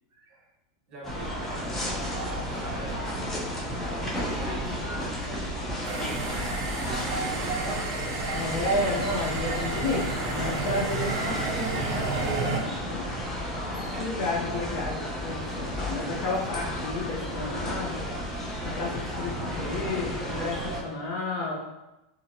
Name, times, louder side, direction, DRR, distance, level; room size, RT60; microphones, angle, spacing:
voice 1, 0.1-0.5 0.9-3.2 3.8-7.6, right 2 dB, 40° right, -4 dB, 1.3 m, -44 dB
sound 1, 1.0-20.8, equal, 15° left, 0.7 m, -33 dB
sound 2, 2.0-10.5, right 3 dB, 25° right, 0.9 m, -43 dB
sound 3, 5.8-12.6, right 3 dB, 60° right, 0.6 m, -32 dB
voice 2, 8.3-13.1 13.8-18.1 18.6-21.6, left 2 dB, 55° left, -3 dB, 0.7 m, -32 dB
2.9 x 2.5 x 2.7 m, 0.97 s
hypercardioid pair, 110°, 2 cm